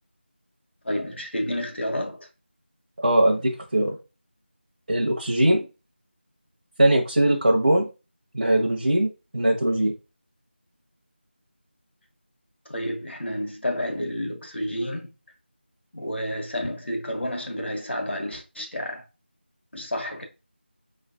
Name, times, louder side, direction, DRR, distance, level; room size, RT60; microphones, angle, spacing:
voice 1, 0.8-2.3 12.7-15.1 15.9-19.0 19.7-20.2, left 1 dB, 70° left, 1.3 m, -30 dB
voice 2, 3.0-4.0 4.9-5.7 6.8-7.9 8.3-9.1 9.3-9.9, right 1 dB, 50° right, 0.8 m, -20 dB
4.8 x 3.2 x 2.6 m
figure-of-eight pair, 175°, 6 cm